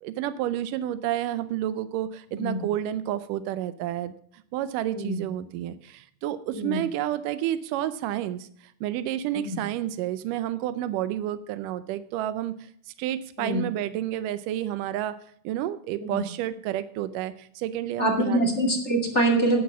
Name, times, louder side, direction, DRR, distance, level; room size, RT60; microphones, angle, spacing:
voice 1, 0.0-4.1 4.5-12.6 12.9-15.2 15.4-18.4, right 12 dB, 90° right, 14 dB, 2.3 m, -30 dB
voice 2, 2.3-2.6 4.9-5.2 6.5-6.8 9.3-9.6 13.4-13.6 16.0-16.2 18.0-19.6, right 1 dB, 25° left, 1 dB, 2.1 m, -25 dB
10.5 x 9.4 x 6.0 m, 0.62 s
omnidirectional pair, 3.7 m